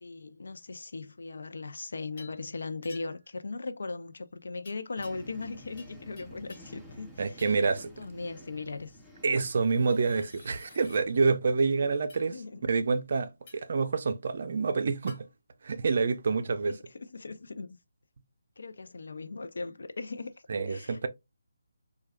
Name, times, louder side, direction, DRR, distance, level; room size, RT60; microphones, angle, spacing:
voice 1, 0.0-7.4 7.8-9.0 12.3-12.7 16.3-16.4 17.0-17.8 18.6-20.3 20.7-21.1, left 3 dB, 70° left, 0.5 m, -39 dB
sound 1, 2.2-2.4 2.8-3.3 4.6-5.5 5.8-6.8 7.4-7.8 9.5-11.0 12.1-12.3 13.5-13.8 15.1-15.2, left 3 dB, 30° left, 1.2 m, -53 dB
sound 2, 5.0-11.4, equal, ahead, 0.5 m, -52 dB
voice 2, 7.2-7.9 9.2-12.3 12.6-15.3 15.6-16.7 20.5-21.1, right 4 dB, 55° right, 0.5 m, -27 dB
4.6 x 2.3 x 2.2 m
figure-of-eight pair, 160°, 0 cm